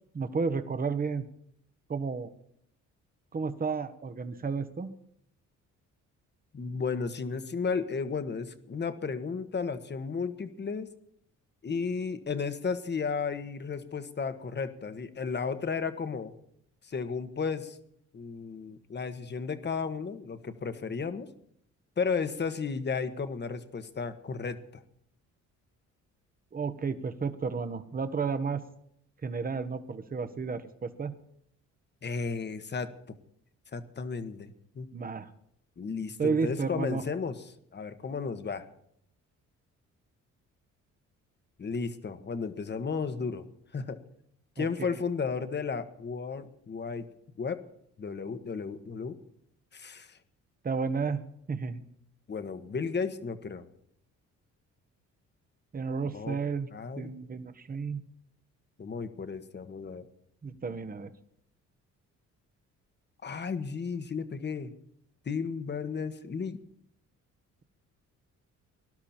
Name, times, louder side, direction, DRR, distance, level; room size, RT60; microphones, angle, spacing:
voice 1, 0.1-1.3 1.9-2.3 3.3-4.9 26.5-28.6 29.2-31.1 34.9-35.3 36.2-37.0 44.6-44.9 50.6-51.2 51.5-51.8 55.7-56.7 57.0-58.0 60.4-61.1, right 5 dB, 30° right, 11 dB, 1.2 m, -32 dB
voice 2, 6.5-10.9 11.6-16.3 16.8-17.8 18.1-21.3 22.0-24.8 32.0-33.2 33.7-34.9 35.8-38.7 41.6-43.4 43.7-44.0 44.6-47.1 47.4-47.6 48.0-49.2 49.7-50.2 52.3-53.6 56.0-56.4 56.7-57.2 58.8-60.0 63.2-64.7 65.2-66.6, left 5 dB, 35° left, 10 dB, 1.4 m, -34 dB
19.5 x 12.0 x 4.4 m, 0.71 s
cardioid pair, 90°, 30 cm